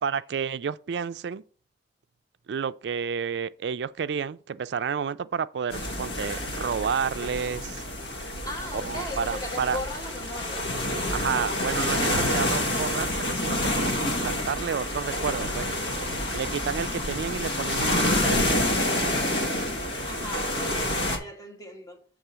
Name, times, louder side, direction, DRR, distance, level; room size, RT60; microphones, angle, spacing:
voice 1, 0.0-1.4 2.5-7.8 8.7-9.8 11.1-15.7 16.3-18.6, right 6 dB, 70° right, 0.4 m, -30 dB
sound 1, 5.7-21.2, left 1 dB, 70° left, 1.5 m, -28 dB
voice 2, 8.4-10.7 20.0-22.0, left 1 dB, 20° left, 1.4 m, -38 dB
6.8 x 3.6 x 6.1 m
head